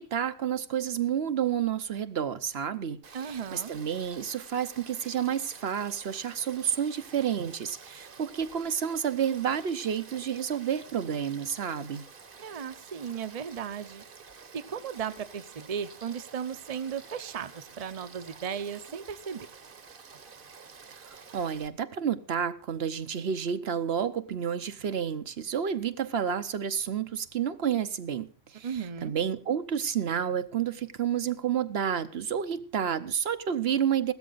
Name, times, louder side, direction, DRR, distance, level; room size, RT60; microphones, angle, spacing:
voice 1, 0.0-3.0 3.2-12.0 21.1-28.7 29.0-34.1, right 8 dB, 75° right, 1.1 m, -30 dB
Frog / Stream, 3.0-21.7, right 5 dB, 55° right, 1.2 m, -50 dB
voice 2, 3.1-3.7 12.4-14.0 14.5-19.5 28.6-29.1, right 7 dB, 40° right, 0.8 m, -36 dB
16.0 x 13.0 x 3.9 m
omnidirectional pair, 1.1 m